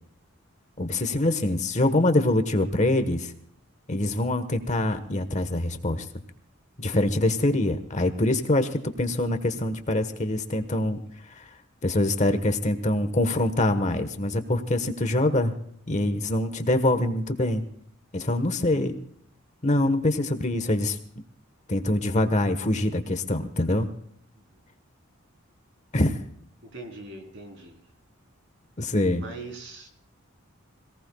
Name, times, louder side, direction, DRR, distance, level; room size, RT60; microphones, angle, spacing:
voice 1, 0.8-3.3 3.9-6.0 6.8-8.7 9.0-11.0 11.4-11.5 11.8-15.5 15.9-17.6 18.1-19.0 19.6-21.0 21.7-23.9 25.9-26.2 28.8-29.2, left 1 dB, 35° left, 9 dB, 1.2 m, -24 dB
voice 2, 26.6-27.8 29.2-29.9, right 2 dB, 60° right, 3 dB, 3.7 m, -41 dB
26.5 x 18.0 x 2.3 m, 0.65 s
head